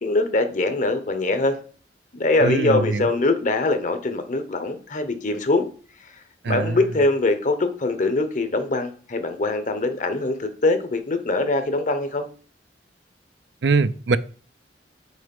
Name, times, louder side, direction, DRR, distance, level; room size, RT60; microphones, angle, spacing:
voice 1, 0.0-1.6 2.1-5.7 6.5-12.3, left 2 dB, 45° left, 1.0 m, -23 dB
voice 2, 2.4-3.1 6.4-6.8 13.6-14.2, right 4 dB, 70° right, 0.5 m, -22 dB
6.4 x 4.8 x 5.3 m
head